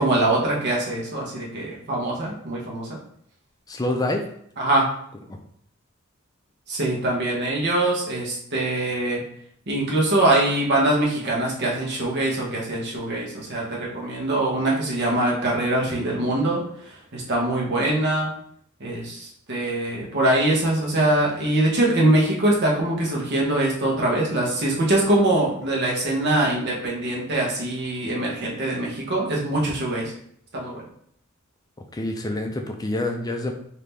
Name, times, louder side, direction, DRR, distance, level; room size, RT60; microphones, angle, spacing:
voice 1, 0.0-3.0 4.6-4.9 6.7-9.2 9.7-18.3 18.8-30.1 30.5-30.8, right 1 dB, 55° right, -3 dB, 1.2 m, -23 dB
voice 2, 3.7-4.2 5.3-5.4 31.9-33.5, left 1 dB, 20° left, 4 dB, 0.4 m, -26 dB
3.7 x 2.8 x 3.3 m, 0.66 s
head